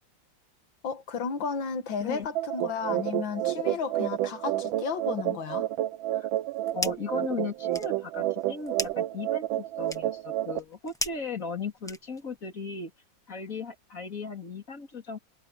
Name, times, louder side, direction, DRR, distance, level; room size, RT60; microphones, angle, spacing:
voice 1, 0.8-5.7, left 6 dB, 75° left, 2.2 m, -33 dB
sound 1, 2.3-10.6, right 14 dB, 90° right, 1.4 m, -30 dB
sound 2, 6.3-7.2 7.5-12.4, equal, ahead, 1.0 m, -38 dB
voice 2, 6.7-12.9 13.3-15.2, left 5 dB, 45° left, 3.5 m, -37 dB
omnidirectional pair, 2.1 m